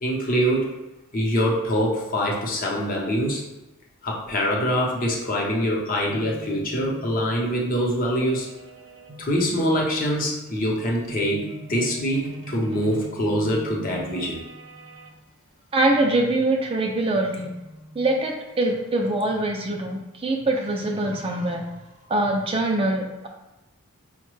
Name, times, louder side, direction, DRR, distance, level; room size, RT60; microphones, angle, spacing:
voice 1, 0.0-0.7 1.1-3.4 4.0-8.5 9.2-14.4, equal, 40° left, -2 dB, 0.7 m, -24 dB
sound 1, 6.1-15.1 17.1-19.0 20.5-22.5, right 1 dB, 60° right, 0.6 m, -43 dB
voice 2, 15.7-17.5 18.0-21.6 22.1-23.3, right 2 dB, 25° right, 1 dB, 0.3 m, -23 dB
4.7 x 2.1 x 3.1 m, 1.0 s
head